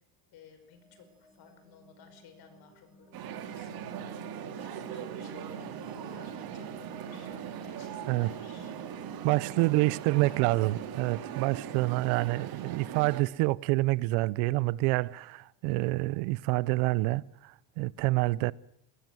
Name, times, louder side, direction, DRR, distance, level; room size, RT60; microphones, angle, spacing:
voice 1, 0.3-4.1 4.6-8.8 9.6-10.5, left 6 dB, 50° left, 5.4 m, -56 dB
sound 1, 0.6-15.3, equal, ahead, 4.4 m, -57 dB
sound 2, 3.1-13.2, right 9 dB, 45° right, 2.5 m, -40 dB
voice 2, 9.2-18.5, right 21 dB, 75° right, 0.8 m, -27 dB
21.0 x 20.0 x 7.8 m
cardioid pair, 150°, 49 cm